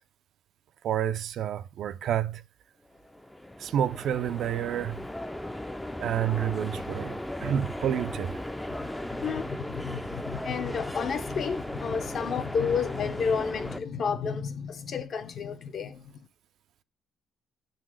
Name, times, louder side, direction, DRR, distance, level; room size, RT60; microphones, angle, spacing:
voice 1, 0.8-2.4 3.6-5.0 6.0-7.2 7.4-8.4, right 10 dB, 65° right, 0.4 m, -29 dB
sound 1, 2.9-13.8, left 1 dB, 5° left, 0.4 m, -37 dB
voice 2, 9.2-16.0, left 6 dB, 50° left, 0.7 m, -31 dB
6.4 x 3.9 x 6.3 m
cardioid pair, 140°, 0 cm